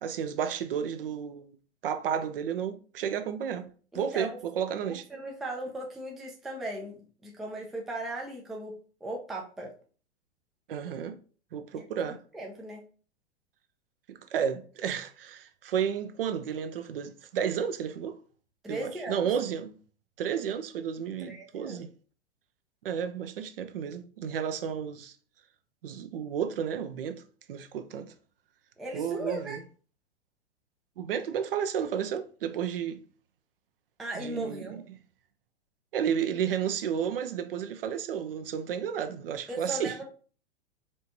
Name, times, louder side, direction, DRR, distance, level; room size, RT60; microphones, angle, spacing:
voice 1, 0.0-1.5 1.8-5.1 10.7-11.2 11.5-12.2 14.1-18.2 18.7-19.8 20.2-21.9 22.8-25.1 25.8-27.2 27.5-28.1 28.9-29.6 31.0-33.0 34.1-34.8 35.9-40.0, right 8 dB, 55° right, 0.6 m, -32 dB
voice 2, 3.9-4.4 5.1-8.7 9.0-9.7 11.7-11.8 12.3-12.8 18.6-19.3 21.2-21.8 28.8-29.6 34.0-34.8 39.5-40.0, right 1 dB, ahead, 0.4 m, -37 dB
4.4 x 3.3 x 2.7 m
figure-of-eight pair, 105°, 34 cm